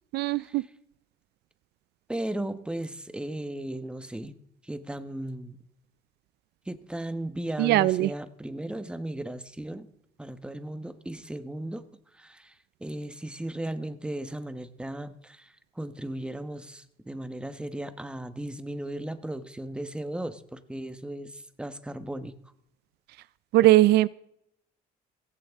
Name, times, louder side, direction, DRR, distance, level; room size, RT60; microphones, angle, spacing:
voice 1, 0.1-0.6 7.6-8.1 23.5-24.1, right 16 dB, 75° right, 19 dB, 0.5 m, -20 dB
voice 2, 2.1-4.4 4.6-5.6 6.6-9.9 10.2-11.8 12.1-22.4, right 1 dB, 5° right, 11 dB, 1.1 m, -36 dB
16.5 x 15.5 x 3.6 m, 0.73 s
cardioid pair, 110°, 17 cm